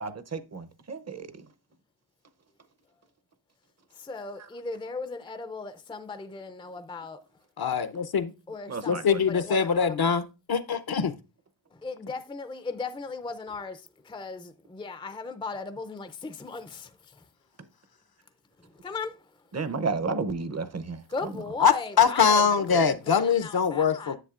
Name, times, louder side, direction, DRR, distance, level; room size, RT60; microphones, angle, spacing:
voice 1, 0.0-1.4 8.7-9.2 19.5-21.0, right 4 dB, 35° right, 0.7 m, -32 dB
voice 2, 3.9-7.2 8.5-10.1 11.7-17.3 18.6-19.3 21.1-24.2, left 4 dB, 10° left, 0.4 m, -37 dB
voice 3, 7.6-8.3 8.9-11.1 21.6-24.2, left 6 dB, 55° left, 0.6 m, -23 dB
10.0 x 7.3 x 2.4 m
wide cardioid pair, 110°, 43 cm